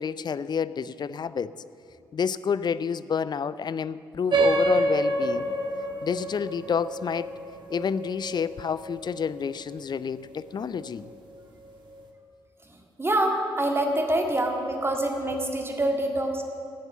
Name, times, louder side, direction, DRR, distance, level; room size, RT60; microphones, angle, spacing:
voice 1, 0.0-1.5 2.1-5.5 6.0-7.3 7.7-11.1, left 6 dB, 35° left, 16 dB, 0.5 m, -29 dB
sound 1, 4.3-9.3, right 1 dB, 40° right, 1.8 m, -27 dB
voice 2, 13.0-16.4, right 1 dB, 20° right, 2 dB, 2.1 m, -25 dB
18.0 x 8.1 x 7.2 m, 2.4 s
figure-of-eight pair, 40°, 12 cm